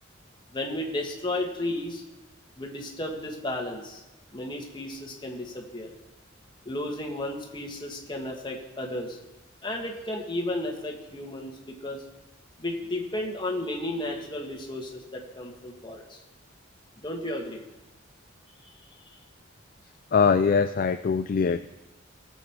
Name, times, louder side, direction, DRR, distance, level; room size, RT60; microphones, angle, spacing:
voice 1, 0.5-2.0 2.6-4.0 4.3-5.9 6.7-9.2 9.6-12.0 12.6-16.2 17.0-17.6 18.6-19.2, left 1 dB, 25° left, 1 dB, 1.8 m, -33 dB
voice 2, 20.1-21.7, left 5 dB, 45° left, 10 dB, 0.3 m, -22 dB
18.5 x 7.4 x 4.7 m, 1.0 s
head